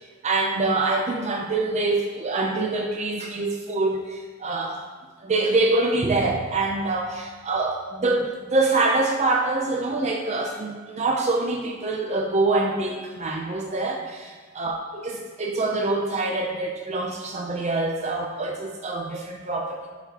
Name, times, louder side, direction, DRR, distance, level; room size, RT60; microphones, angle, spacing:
voice 1, 0.2-4.8 5.2-19.9, right 2 dB, 30° right, 1 dB, 0.5 m, -25 dB
11.5 x 5.9 x 2.9 m, 1.5 s
head